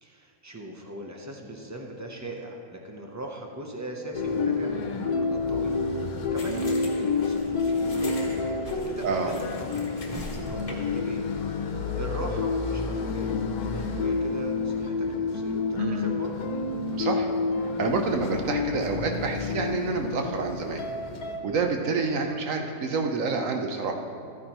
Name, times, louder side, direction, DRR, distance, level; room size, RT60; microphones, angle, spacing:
voice 1, 0.0-9.3 10.1-11.3 11.7-16.4, right 1 dB, 20° right, 1 dB, 0.4 m, -40 dB
sound 1, 4.1-21.4, left 4 dB, 80° left, 1.3 m, -29 dB
sound 2, 6.4-11.0, left 1 dB, 25° left, 1.0 m, -41 dB
voice 2, 9.0-9.4 15.8-16.0 16.9-17.3 17.8-20.8 21.4-23.9, right 4 dB, 65° right, 4 dB, 1.1 m, -28 dB
13.0 x 9.5 x 3.0 m, 2.3 s
omnidirectional pair, 1.6 m